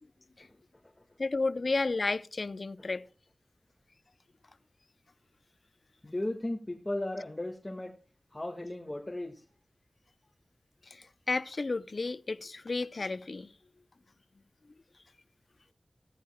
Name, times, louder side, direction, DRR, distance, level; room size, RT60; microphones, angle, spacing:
voice 1, 1.2-3.0 10.9-13.5, left 3 dB, 65° left, 0.6 m, -32 dB
voice 2, 6.0-7.9 8.3-9.4, left 1 dB, 25° left, 1.7 m, -36 dB
16.5 x 14.0 x 2.3 m
wide cardioid pair, 55°, 0 cm